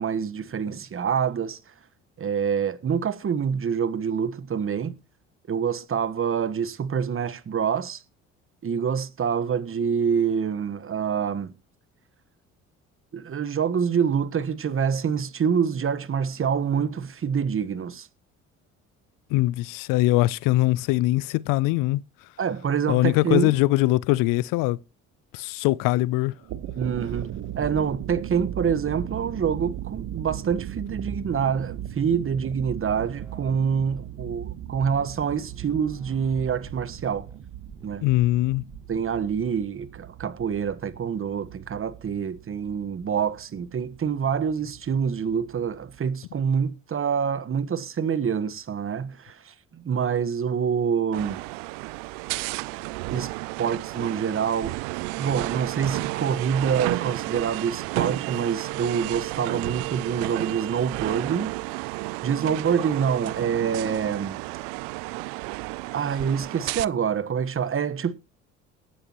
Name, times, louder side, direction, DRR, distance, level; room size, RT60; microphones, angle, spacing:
voice 1, 0.0-1.6 2.2-5.0 5.5-8.0 8.6-11.5 13.1-18.1 22.4-23.6 26.7-37.3 37.8-38.0 38.9-51.4 53.1-53.3 53.6-54.8 55.2-61.5 62.2-64.4 65.9-68.1, right 7 dB, 40° right, 1.4 m, -26 dB
voice 2, 19.3-22.0 22.9-24.8 25.3-26.3 38.0-38.6, left 18 dB, 75° left, 0.6 m, -22 dB
sound 1, 26.3-46.0, right 12 dB, 65° right, 1.3 m, -38 dB
sound 2, 32.4-39.4, right 1 dB, 10° right, 2.2 m, -48 dB
sound 3, 51.1-66.8, right 24 dB, 80° right, 0.5 m, -32 dB
19.0 x 10.0 x 3.0 m
hypercardioid pair, 65°, 33 cm